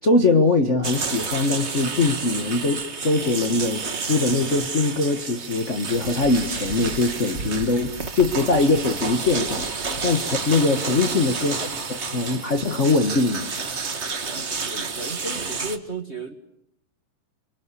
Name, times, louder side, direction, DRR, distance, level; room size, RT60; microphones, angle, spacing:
voice 1, 0.0-9.6 10.0-13.5, left 3 dB, 60° left, 7 dB, 0.7 m, -22 dB
sound 1, 0.8-15.8, right 4 dB, 40° right, 0.9 m, -30 dB
sound 2, 5.9-10.4, right 4 dB, 80° right, 0.6 m, -38 dB
voice 2, 14.6-16.3, right 2 dB, 25° right, 6 dB, 1.5 m, -35 dB
29.0 x 24.5 x 8.4 m, 0.75 s
omnidirectional pair, 3.9 m